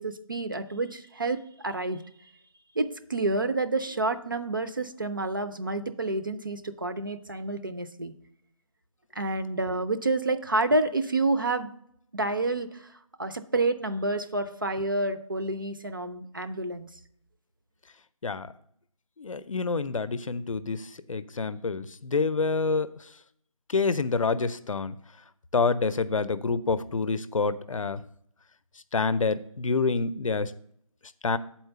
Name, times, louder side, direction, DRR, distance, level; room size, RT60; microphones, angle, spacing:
voice 1, 0.0-2.0 2.8-8.1 9.2-11.7 12.1-12.9 13.2-16.9, right 2 dB, 40° right, 8 dB, 0.4 m, -29 dB
voice 2, 19.2-22.9 23.7-25.0 25.5-28.0 28.9-30.5 31.2-31.4, left 4 dB, 65° left, 14 dB, 0.6 m, -27 dB
7.3 x 4.4 x 6.7 m, 0.69 s
figure-of-eight pair, 175°, 18 cm